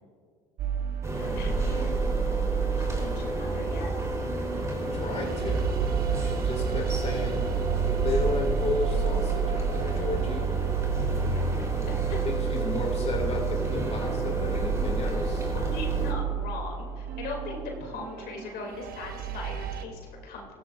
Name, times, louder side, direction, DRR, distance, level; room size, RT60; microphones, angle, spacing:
sound 1, 0.6-19.8, right 10 dB, 55° right, 0.9 m, -31 dB
sound 2, 1.0-16.1, right 1 dB, 15° right, 3.5 m, -31 dB
voice 1, 1.2-1.9 2.8-3.9 11.3-11.4 12.1-12.3 15.5-20.5, left 3 dB, 65° left, 0 dB, 2.7 m, -39 dB
voice 2, 4.9-5.7 6.2-7.4 7.9-10.4 12.2-15.5, left 2 dB, 35° left, 0 dB, 2.4 m, -33 dB
16.5 x 13.5 x 2.5 m, 2.1 s
hypercardioid pair, 65°, 18 cm